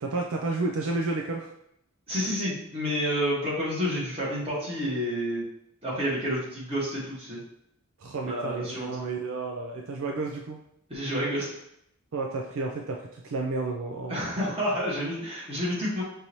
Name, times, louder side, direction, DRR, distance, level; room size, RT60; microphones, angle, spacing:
voice 1, 0.0-1.5 8.0-10.6 12.1-14.5, right 3 dB, 65° right, 1 dB, 0.4 m, -31 dB
voice 2, 2.1-5.4 5.8-7.4 8.2-8.9 10.9-11.5 14.1-16.0, equal, 25° right, -7 dB, 1.7 m, -29 dB
5.4 x 2.7 x 3.0 m, 0.76 s
head